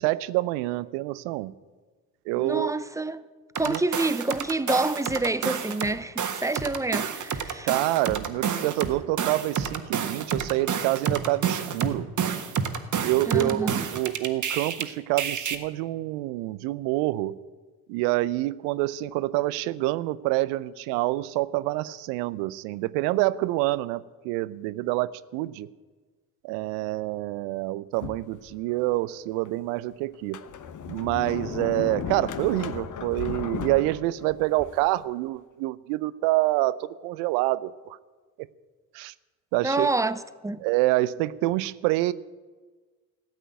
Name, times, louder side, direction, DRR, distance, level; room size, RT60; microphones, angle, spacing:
voice 1, 0.0-1.5 2.3-2.7 3.7-3.8 7.6-12.1 13.0-17.4 17.9-25.7 26.4-30.4 30.9-38.0 38.9-39.1 39.5-39.9 40.6-42.1, right 18 dB, 70° right, 0.6 m, -27 dB
voice 2, 2.4-3.2 3.5-7.7 13.3-13.8 39.6-40.6, right 2 dB, 10° right, 0.7 m, -27 dB
sound 1, 3.6-5.9 6.2-14.8 15.2-15.6, right 7 dB, 45° right, 1.5 m, -29 dB
Sliding door, 28.0-28.9 29.4-29.5 30.1-35.0, left 8 dB, 45° left, 1.1 m, -35 dB
15.0 x 8.1 x 9.1 m
hypercardioid pair, 50°, 42 cm